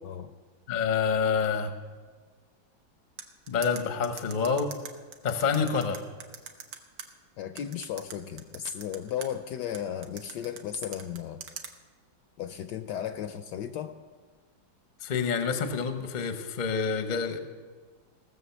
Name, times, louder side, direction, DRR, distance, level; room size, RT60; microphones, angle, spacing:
voice 1, 0.7-1.7 3.5-4.7 5.2-6.0 15.0-17.4, left 5 dB, 40° left, 8 dB, 0.7 m, -27 dB
sound 1, 3.2-7.1 7.6-9.3 9.7-11.7, right 7 dB, 70° right, 1.6 m, -42 dB
voice 2, 7.4-11.4 12.4-14.0, left 9 dB, 70° left, 9 dB, 1.1 m, -35 dB
17.0 x 6.9 x 7.0 m, 1.5 s
omnidirectional pair, 2.1 m